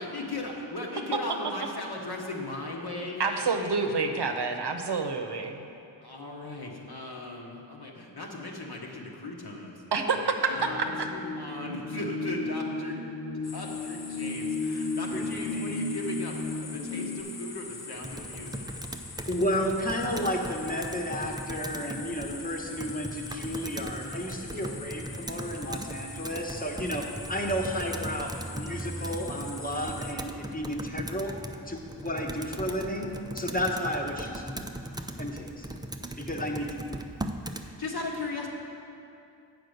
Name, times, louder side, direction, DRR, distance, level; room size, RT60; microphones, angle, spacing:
voice 1, 0.0-4.2 6.0-9.8 10.1-13.0 13.3-18.7 37.6-38.5, left 2 dB, 60° left, -1 dB, 1.3 m, -38 dB
voice 2, 3.2-5.6 9.9-11.1, right 4 dB, 65° right, 5 dB, 0.8 m, -28 dB
sound 1, 10.5-17.2, left 3 dB, 80° left, 0.6 m, -34 dB
sound 2, 13.4-30.1, left 4 dB, 40° left, 0.7 m, -44 dB
voice 3, 15.1-15.9 19.3-27.0 27.3-31.3 31.7-34.6 35.2-35.7 36.2-36.7, equal, 20° left, 0 dB, 1.1 m, -32 dB
Computer keyboard, 18.0-37.7, right 1 dB, 10° right, 0.4 m, -39 dB
7.9 x 5.0 x 6.4 m, 2.6 s
cardioid pair, 45°, 44 cm